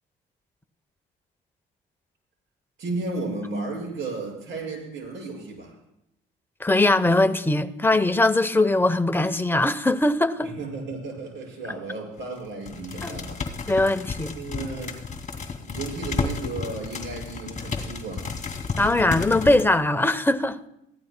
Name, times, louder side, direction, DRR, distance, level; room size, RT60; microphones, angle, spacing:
voice 1, 2.8-5.7 10.4-13.4 14.3-15.0 15.6-18.3, right 3 dB, 75° right, 5.8 m, -34 dB
voice 2, 6.6-10.5 13.0-13.2 13.7-14.3 18.8-20.6, left 2 dB, 10° left, 0.8 m, -21 dB
sound 1, 12.2-12.4 12.7-19.7, left 5 dB, 35° left, 2.2 m, -32 dB
22.5 x 15.5 x 2.2 m
cardioid pair, 90°, 20 cm